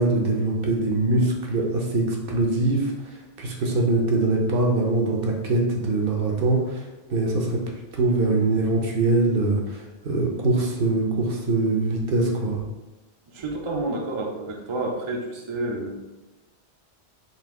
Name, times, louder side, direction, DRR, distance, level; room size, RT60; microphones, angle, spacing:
voice 1, 0.0-6.8 7.1-7.6 7.9-12.6, right 2 dB, 60° right, 0 dB, 0.8 m, -23 dB
voice 2, 13.3-15.9, right 2 dB, 40° right, -1 dB, 0.4 m, -29 dB
4.1 x 2.5 x 3.5 m, 1.1 s
omnidirectional pair, 1.2 m